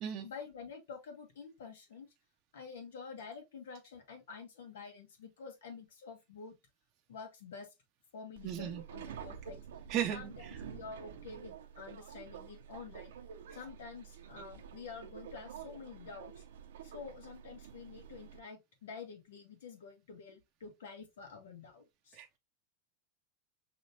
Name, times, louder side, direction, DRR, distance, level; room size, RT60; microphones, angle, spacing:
voice 1, 0.2-2.1 2.5-6.5 7.1-7.7 8.1-9.6 10.1-13.1 13.5-16.4 16.8-22.2, left 5 dB, 90° left, 1.5 m, -48 dB
Subway metro underground, 8.3-18.4, right 8 dB, 85° right, 0.7 m, -49 dB
voice 2, 8.4-8.8 9.9-10.5 22.1-22.4, right 10 dB, 40° right, 0.6 m, -36 dB
5.1 x 3.2 x 2.7 m
supercardioid pair, 130°, 0 cm